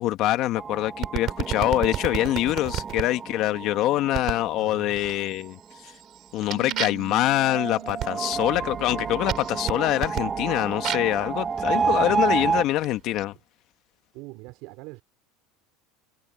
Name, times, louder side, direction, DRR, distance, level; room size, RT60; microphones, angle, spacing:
voice 1, 0.0-5.6 5.8-5.9 6.3-13.3, left 15 dB, 50° left, 1.8 m, -25 dB
sound 1, 0.6-5.9 7.4-12.6, right 5 dB, 20° right, 1.6 m, -30 dB
sound 2, 1.0-3.1 4.1-4.5 4.9-5.4 5.8-11.2 12.0-13.2, right 13 dB, 45° right, 5.8 m, -33 dB
voice 2, 4.6-5.0 8.5-8.7 14.1-15.0, right 23 dB, 60° right, 4.5 m, -43 dB
Bass guitar, 6.5-12.8, right 23 dB, 85° right, 3.5 m, -46 dB
supercardioid pair, 135°, 0 cm